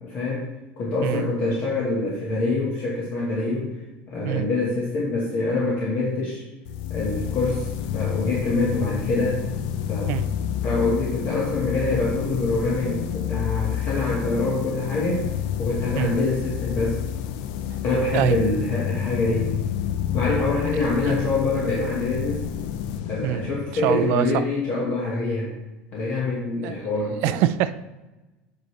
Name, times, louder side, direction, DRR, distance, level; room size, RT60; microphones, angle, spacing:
voice 1, 0.0-3.8 4.1-6.4 6.9-9.4 9.9-10.2 10.6-15.2 15.6-17.0 17.8-19.5 20.1-22.4 23.1-25.5 25.9-27.4, left 2 dB, 35° left, -5 dB, 1.2 m, -25 dB
sound 1, 6.7-24.2, left 9 dB, 65° left, 0.5 m, -29 dB
voice 2, 23.8-24.4 26.6-26.8 27.2-27.8, right 14 dB, 50° right, 13 dB, 0.3 m, -24 dB
7.8 x 4.9 x 3.1 m, 1.1 s
cardioid pair, 180°, 4 cm